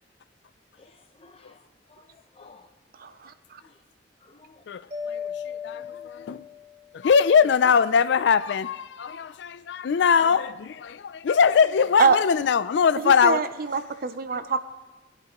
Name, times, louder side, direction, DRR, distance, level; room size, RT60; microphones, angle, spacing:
voice 1, 0.8-2.7 3.6-3.8 4.2-4.6, left 3 dB, 30° left, 0.9 m, -55 dB
voice 2, 3.0-3.6 12.0-12.2 13.0-13.5 13.7-14.6, right 5 dB, 55° right, 0.6 m, -24 dB
voice 3, 4.7-6.5 6.9-13.4 14.3-14.6, left 6 dB, 70° left, 0.4 m, -22 dB
Mallet percussion, 4.9-7.0, left 7 dB, 35° right, 1.6 m, -36 dB
20.0 x 10.5 x 3.0 m
head